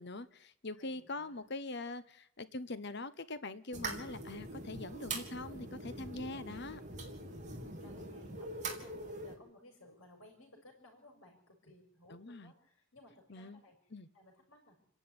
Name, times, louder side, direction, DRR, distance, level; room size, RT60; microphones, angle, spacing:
voice 1, 0.0-6.8 12.1-12.5 13.3-13.6 13.9-14.1, left 2 dB, 50° left, 1.0 m, -43 dB
voice 2, 0.7-1.5 7.2-13.8 14.1-14.8, left 1 dB, 65° left, 5.7 m, -60 dB
sound 1, 3.7-9.3, right 2 dB, 35° right, 3.4 m, -43 dB
28.5 x 11.0 x 9.7 m
head